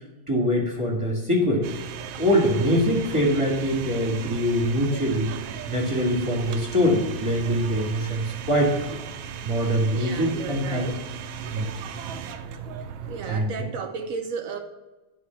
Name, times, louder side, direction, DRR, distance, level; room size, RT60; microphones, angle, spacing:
voice 1, 0.3-1.7 2.2-5.3 5.7-8.7 9.4-10.9 11.5-11.7 13.3-13.5, equal, 15° right, 1.7 m, -23 dB
sound 1, 1.6-13.5, right 7 dB, 85° right, 1.4 m, -36 dB
voice 2, 9.9-11.0 13.1-14.6, right 5 dB, 60° right, 0.9 m, -34 dB
10.5 x 3.7 x 5.7 m
omnidirectional pair, 2.1 m